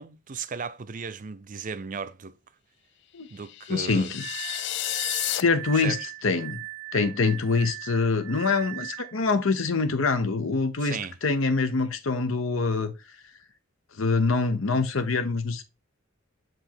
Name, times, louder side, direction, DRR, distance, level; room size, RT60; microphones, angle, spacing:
voice 1, 0.0-2.4 3.3-4.1 5.8-6.0 10.8-11.2, right 5 dB, 40° right, 0.5 m, -36 dB
sound 1, 3.4-5.4, left 14 dB, 60° left, 0.3 m, -31 dB
voice 2, 3.7-4.2 5.4-6.0 6.2-6.6 6.9-12.9 14.0-15.6, left 4 dB, 80° left, 0.8 m, -25 dB
Glass, 4.2-9.2, right 24 dB, 85° right, 0.8 m, -39 dB
7.9 x 3.0 x 4.4 m
head